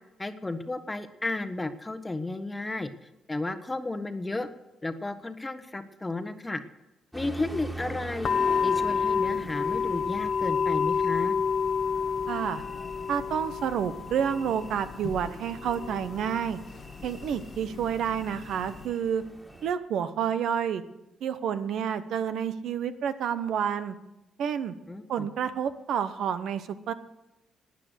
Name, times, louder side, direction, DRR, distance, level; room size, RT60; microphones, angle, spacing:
voice 1, 0.2-2.9 3.3-4.5 4.8-6.6 7.1-8.3 8.6-11.3 24.9-25.3, left 2 dB, 15° left, 9 dB, 1.1 m, -33 dB
sound 1, 7.1-19.7, right 1 dB, 5° right, 2.3 m, -44 dB
sound 2, 8.2-18.9, left 6 dB, 50° left, 0.9 m, -30 dB
voice 2, 12.3-12.6 13.1-16.6 17.0-19.2 19.6-20.8 21.2-23.9 24.4-24.7 25.1-26.9, right 8 dB, 75° right, 12 dB, 0.9 m, -29 dB
13.0 x 9.5 x 8.1 m, 0.97 s
cardioid pair, 90°, 0 cm